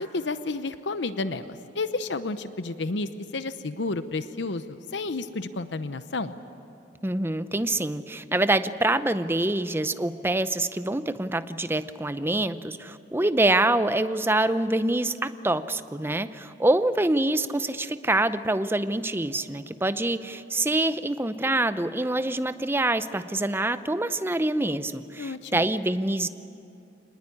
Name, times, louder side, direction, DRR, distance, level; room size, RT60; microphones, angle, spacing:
voice 1, 0.0-6.4 25.2-25.6, left 3 dB, 75° left, 12 dB, 0.8 m, -31 dB
voice 2, 7.0-26.3, right 2 dB, 15° right, 12 dB, 0.6 m, -25 dB
25.5 x 19.5 x 9.8 m, 2.7 s
head